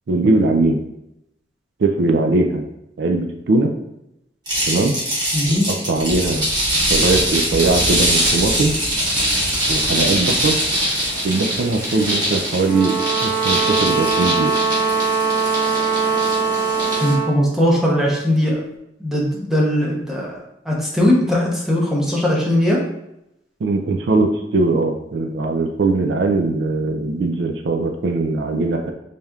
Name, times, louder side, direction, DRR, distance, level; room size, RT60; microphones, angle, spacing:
voice 1, 0.1-0.8 1.8-2.6 3.0-3.7 4.7-5.0 5.7-6.5 6.9-8.7 9.7-10.6 11.2-14.5 23.6-28.9, right 3 dB, 70° right, 4 dB, 0.4 m, -20 dB
sound 1, 4.5-17.1, equal, 25° right, 1.3 m, -22 dB
voice 2, 5.3-5.6 17.0-18.6 19.0-20.3 20.7-22.8, left 1 dB, 5° right, -4 dB, 0.7 m, -19 dB
sound 2, 12.6-17.4, right 5 dB, 15° left, 0.4 m, -21 dB
4.1 x 3.4 x 2.3 m, 0.84 s
head